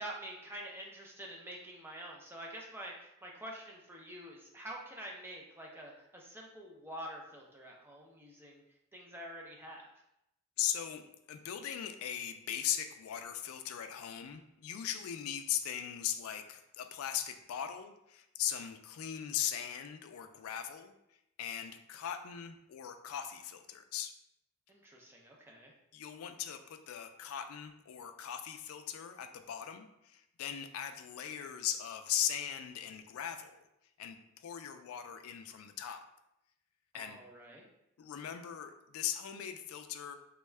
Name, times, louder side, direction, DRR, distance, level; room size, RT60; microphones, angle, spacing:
voice 1, 0.0-8.6 8.9-9.9 24.7-25.7 36.9-37.7, right 1 dB, 10° right, -1 dB, 0.4 m, -47 dB
voice 2, 10.6-20.9 21.4-24.1 25.9-33.6 34.0-36.0 36.9-37.2 38.0-40.1, left 10 dB, 90° left, 8 dB, 0.3 m, -39 dB
3.4 x 2.2 x 3.2 m, 0.84 s
head